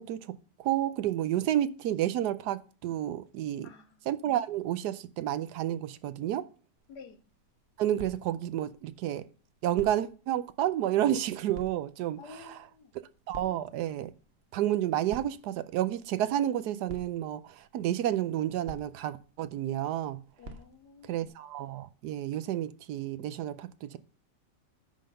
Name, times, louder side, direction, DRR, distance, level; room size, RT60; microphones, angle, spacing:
voice 1, 0.0-3.7 4.1-6.4 7.8-9.2 9.6-12.6 13.3-14.1 14.5-20.2 21.1-24.0, right 12 dB, 75° right, 1.1 m, -30 dB
voice 2, 3.6-4.0 6.9-7.2 12.2-12.9 20.4-21.2, left 5 dB, 70° left, 1.7 m, -50 dB
sound 1, 6.8-21.3, right 1 dB, 40° right, 1.2 m, -52 dB
10.0 x 3.8 x 6.5 m
omnidirectional pair, 1.8 m